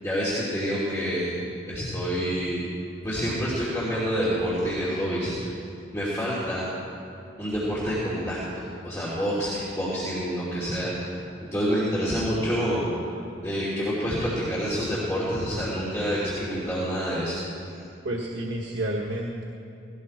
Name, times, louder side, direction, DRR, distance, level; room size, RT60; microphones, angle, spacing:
voice 1, 0.0-1.4 1.7-2.7 3.0-5.5 5.9-6.7 7.4-11.1 11.5-13.0 13.4-17.4, equal, 15° left, -9 dB, 2.7 m, -27 dB
voice 2, 18.0-19.4, right 1 dB, 70° right, -2 dB, 1.3 m, -30 dB
17.5 x 17.0 x 4.3 m, 2.7 s
head